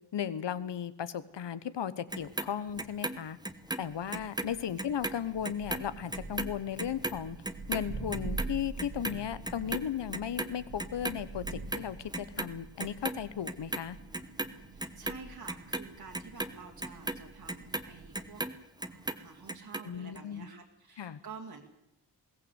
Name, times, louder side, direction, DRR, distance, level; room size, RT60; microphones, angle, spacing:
voice 1, 0.1-3.4 3.8-7.4 7.7-14.0 19.8-20.5 21.0-21.2, left 9 dB, 75° left, 15 dB, 1.2 m, -36 dB
Clock, 2.1-4.5 4.8-11.2 11.4-12.5 12.8-13.8 14.1-18.5 18.8-19.8 20.2-20.3, right 2 dB, 10° right, 1.1 m, -36 dB
Thunder, 4.0-18.4, right 3 dB, 75° right, 2.8 m, -45 dB
voice 2, 14.7-18.4 18.8-21.6, right 5 dB, 55° right, -1 dB, 2.5 m, -49 dB
22.0 x 17.0 x 8.2 m, 0.88 s
wide cardioid pair, 140°, 43 cm